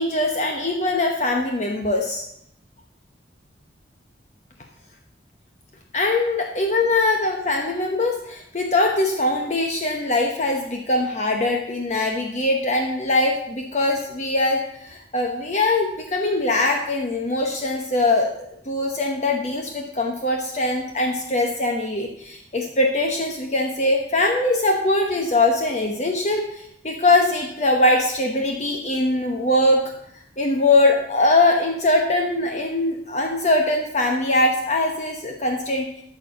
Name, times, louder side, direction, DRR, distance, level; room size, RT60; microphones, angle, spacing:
voice 1, 0.0-2.2 5.9-18.3 18.7-29.8 30.4-35.9, left 2 dB, 40° left, 2 dB, 1.0 m, -22 dB
13.0 x 4.5 x 6.8 m, 0.74 s
head